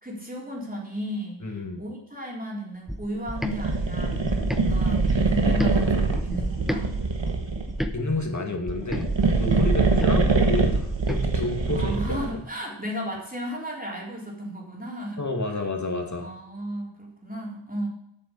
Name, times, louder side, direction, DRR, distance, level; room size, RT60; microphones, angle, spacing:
voice 1, 0.0-6.9 9.7-10.1 11.7-15.6 16.2-17.9, equal, 20° right, -2 dB, 3.7 m, -35 dB
voice 2, 1.4-1.8 7.9-12.3 15.2-16.3, left 2 dB, 40° left, 2 dB, 2.1 m, -30 dB
sound 1, 2.9-6.8 7.2-11.2, equal, ahead, 0.9 m, -34 dB
sound 2, 3.4-7.8 8.7-12.4, right 3 dB, 80° right, 1.5 m, -24 dB
8.7 x 6.8 x 7.2 m, 0.75 s
wide cardioid pair, 55°, 44 cm